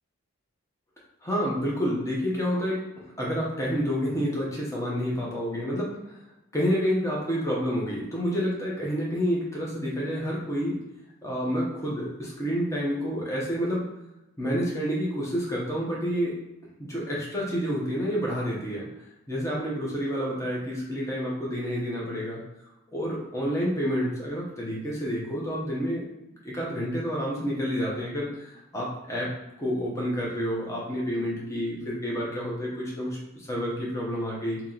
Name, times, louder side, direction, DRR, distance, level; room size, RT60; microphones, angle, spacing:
voice 1, 1.2-2.8 3.2-6.2 6.5-10.8 11.2-13.9 14.4-16.3 16.8-18.9 19.3-22.4 22.9-26.1 26.4-29.3 29.6-34.6, equal, 15° left, -5 dB, 0.8 m, -29 dB
2.9 x 2.9 x 3.9 m, 0.94 s
head